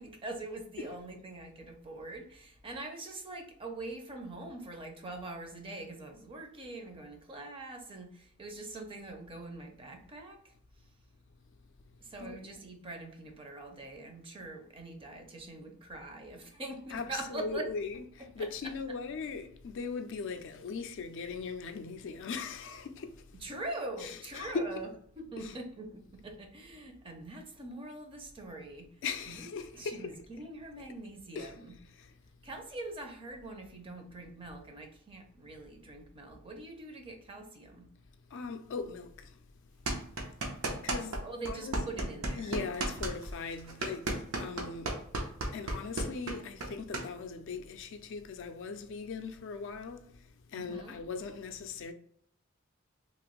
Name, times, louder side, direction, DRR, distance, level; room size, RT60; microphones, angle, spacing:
voice 1, 0.0-10.9 12.0-17.7 18.4-18.5 23.4-24.9 25.2-31.7 32.4-37.9 40.6-42.6 50.5-51.0, right 2 dB, 25° right, 0.5 m, -43 dB
voice 2, 16.9-23.2 24.0-24.8 25.4-25.5 29.0-30.2 31.4-31.6 31.9-32.1 38.3-39.4 40.8-41.2 41.5-42.1 42.4-45.0 45.5-50.2 50.5-51.9, left 4 dB, 60° left, 0.4 m, -39 dB
sound 1, 39.9-41.2 41.5-47.1, right 2 dB, 80° right, 0.7 m, -33 dB
3.0 x 2.5 x 3.0 m
head